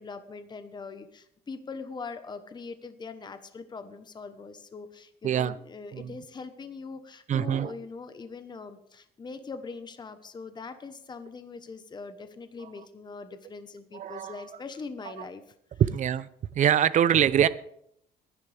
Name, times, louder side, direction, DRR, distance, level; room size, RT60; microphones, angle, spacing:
voice 1, 0.0-15.5, left 4 dB, 25° left, 10 dB, 1.1 m, -42 dB
voice 2, 5.2-5.6 5.9-6.1 7.3-7.7 13.9-14.4 15.8-16.3 16.5-17.5, right 9 dB, 45° right, 15 dB, 0.6 m, -24 dB
21.5 x 10.5 x 3.4 m, 0.72 s
cardioid pair, 110°, 17 cm